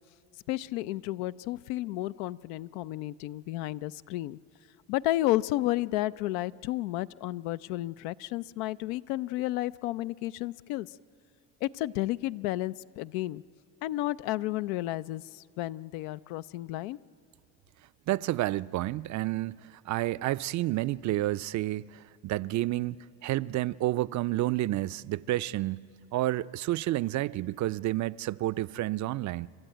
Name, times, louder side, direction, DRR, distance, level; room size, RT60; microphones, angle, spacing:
voice 1, 0.5-4.4 4.9-10.9 11.6-13.4 13.8-17.0, left 16 dB, 80° left, 0.6 m, -32 dB
voice 2, 18.1-23.0 23.2-25.8 26.1-29.5, right 16 dB, 45° right, 0.5 m, -30 dB
30.0 x 12.5 x 9.1 m
supercardioid pair, 85°, 41 cm